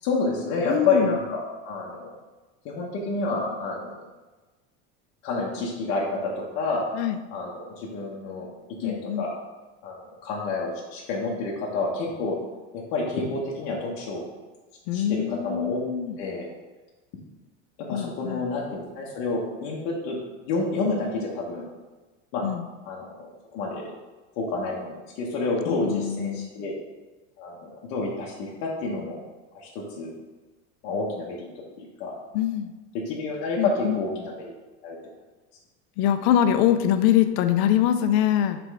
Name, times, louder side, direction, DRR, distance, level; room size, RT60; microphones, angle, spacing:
voice 1, 0.0-2.1 2.6-4.0 5.2-6.8 7.3-8.5 8.8-9.3 9.8-12.4 12.7-14.2 14.9-15.8 16.2-16.5 17.9-20.2 20.5-21.6 22.3-22.4 22.9-23.3 23.5-23.9 24.4-26.7 27.4-29.2 29.5-30.1 30.8-31.5 31.8-32.1 32.9-34.5 34.8-35.0, left 3 dB, 60° left, -4 dB, 1.2 m, -29 dB
voice 2, 0.6-1.1 6.9-7.2 8.8-9.2 14.9-16.2 17.9-18.4 22.4-22.6 25.7-26.5 32.3-32.7 33.6-34.0 36.0-38.6, left 10 dB, 75° left, 9 dB, 0.6 m, -24 dB
6.1 x 3.4 x 4.7 m, 1.2 s
cardioid pair, 155°, 31 cm